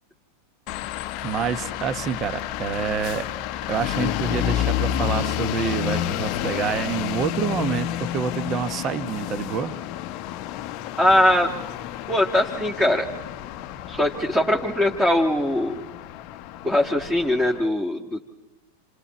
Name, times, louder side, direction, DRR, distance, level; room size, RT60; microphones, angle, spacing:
sound 1, 0.7-17.6, left 12 dB, 40° left, 0.8 m, -30 dB
voice 1, 1.2-3.3 3.7-9.7, right 7 dB, 30° right, 13 dB, 1.0 m, -27 dB
voice 2, 11.0-11.5 12.1-13.1 13.9-15.7 16.6-18.2, left 1 dB, 5° right, -1 dB, 1.6 m, -21 dB
28.5 x 27.5 x 4.3 m, 1.1 s
figure-of-eight pair, 90°, 0 cm